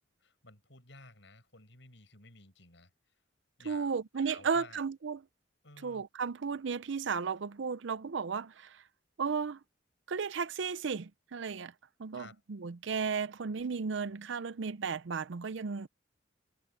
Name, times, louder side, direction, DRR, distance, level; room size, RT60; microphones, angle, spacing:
voice 1, 0.2-2.9 3.6-4.8 5.6-6.0 12.1-12.4, left 3 dB, 65° left, 7.7 m, -55 dB
voice 2, 3.7-5.2 5.8-8.8 9.2-9.6 10.1-11.7 12.0-15.9, right 5 dB, 70° right, 0.5 m, -34 dB
head